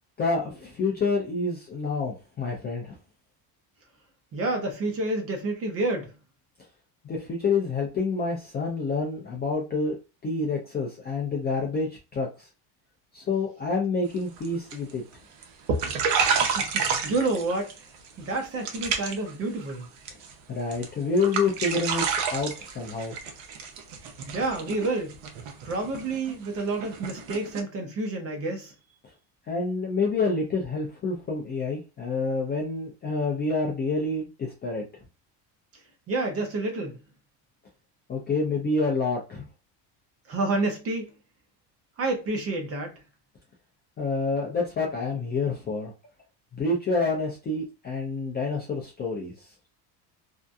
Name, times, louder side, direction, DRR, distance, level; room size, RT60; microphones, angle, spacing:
voice 1, 0.2-3.0 7.0-10.0 10.2-12.5 13.1-15.0 20.5-23.1 29.5-34.9 38.1-39.5 44.0-45.9 46.5-49.5, left 3 dB, 25° left, 0.3 m, -28 dB
voice 2, 4.3-6.1 16.4-17.7 18.2-19.8 24.3-25.2 25.6-28.7 36.1-37.0 40.3-41.1 42.0-43.0, right 2 dB, 30° right, 0.5 m, -29 dB
sound 1, 14.2-14.5 14.7-15.1 15.4-15.5 15.7-17.8 18.0-18.4 18.6-19.3 19.6-20.3 20.7-20.9 21.2-27.6, right 5 dB, 65° right, 0.7 m, -29 dB
2.7 x 2.4 x 2.2 m
cardioid pair, 160°, 48 cm